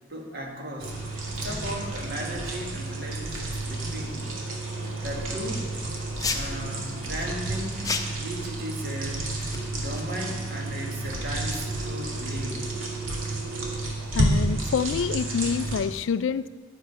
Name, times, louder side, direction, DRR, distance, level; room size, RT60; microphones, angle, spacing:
voice 1, 0.1-4.3 5.0-5.7 6.3-7.9 8.2-9.4 9.7-12.7, equal, 50° right, 0 dB, 1.9 m, -36 dB
sound 1, 0.8-15.8, right 2 dB, 90° right, 2.5 m, -31 dB
sound 2, 6.1-6.6 7.8-8.2 9.4-10.0, left 4 dB, 15° left, 0.7 m, -31 dB
voice 2, 14.1-16.5, left 6 dB, 70° left, 16 dB, 0.3 m, -27 dB
12.0 x 8.7 x 5.6 m, 1.5 s
head